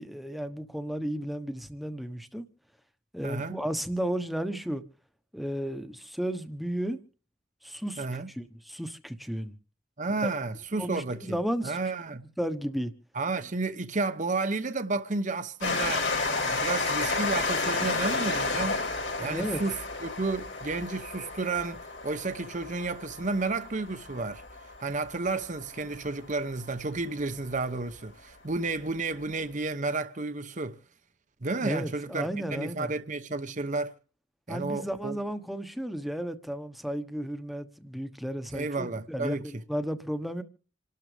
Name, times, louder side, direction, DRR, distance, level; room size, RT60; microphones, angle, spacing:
voice 1, 0.0-2.4 3.1-4.8 5.3-7.0 7.6-8.1 8.3-9.6 10.2-10.3 10.8-11.8 12.4-12.9 19.2-19.6 31.6-32.9 34.5-40.4, equal, ahead, 1.1 m, -33 dB
voice 2, 3.2-3.6 8.0-8.3 10.0-12.2 13.1-18.8 19.2-24.4 24.8-30.8 31.4-33.9 34.5-35.2 38.5-39.5, right 3 dB, 40° right, 0.9 m, -32 dB
Train, 15.6-26.8 27.5-27.6 27.8-27.9, left 3 dB, 85° left, 5.4 m, -32 dB
27.5 x 12.5 x 3.4 m
head